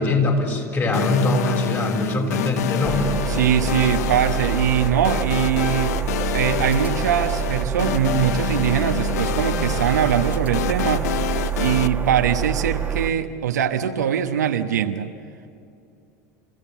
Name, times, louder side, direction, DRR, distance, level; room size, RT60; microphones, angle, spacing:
voice 1, 0.0-3.1, left 2 dB, 25° left, 1 dB, 6.5 m, -22 dB
sound 1, 0.9-11.9, left 13 dB, 75° left, 0.6 m, -28 dB
sound 2, 2.8-13.1, right 8 dB, 20° right, 1.7 m, -26 dB
voice 2, 3.3-6.0 6.3-11.1 11.6-15.1, right 9 dB, 80° right, 7 dB, 1.2 m, -22 dB
29.0 x 15.5 x 8.2 m, 2.6 s
hypercardioid pair, 80°, 9 cm